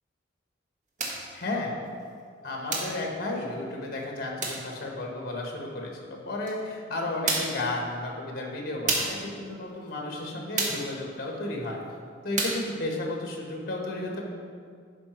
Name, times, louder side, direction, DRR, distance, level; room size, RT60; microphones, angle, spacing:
voice 1, 1.0-1.8 2.4-11.8 12.2-14.3, left 2 dB, 50° left, 0 dB, 1.6 m, -33 dB
sound 1, 1.0-1.3 2.7-3.0 4.4-4.7 6.5-6.6 7.3-7.6 8.9-9.2 10.6-10.9 12.4-12.7, right 2 dB, 40° right, 1.3 m, -29 dB
11.0 x 5.1 x 4.6 m, 2.2 s
head